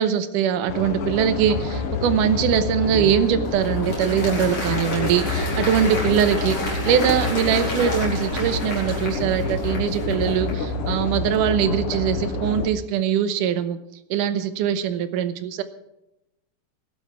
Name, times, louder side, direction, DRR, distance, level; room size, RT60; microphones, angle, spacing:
voice 1, 0.0-13.8 14.1-15.6, right 9 dB, 70° right, 10 dB, 2.3 m, -22 dB
sound 1, 0.7-12.7, left 3 dB, 60° left, 1.5 m, -27 dB
Applause, 3.1-10.7, left 2 dB, 40° left, 5.4 m, -32 dB
20.0 x 12.0 x 3.6 m, 0.90 s
omnidirectional pair, 4.2 m